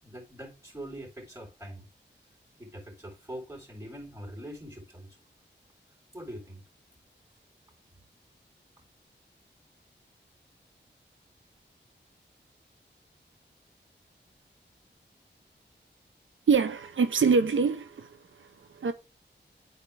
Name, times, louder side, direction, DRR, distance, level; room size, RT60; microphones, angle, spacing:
voice 1, 0.0-1.9 2.6-5.2 6.1-6.6, right 1 dB, 15° right, 3.9 m, -43 dB
voice 2, 16.5-18.9, right 5 dB, 85° right, 0.6 m, -25 dB
9.3 x 4.3 x 3.3 m
wide cardioid pair, 60°, 20 cm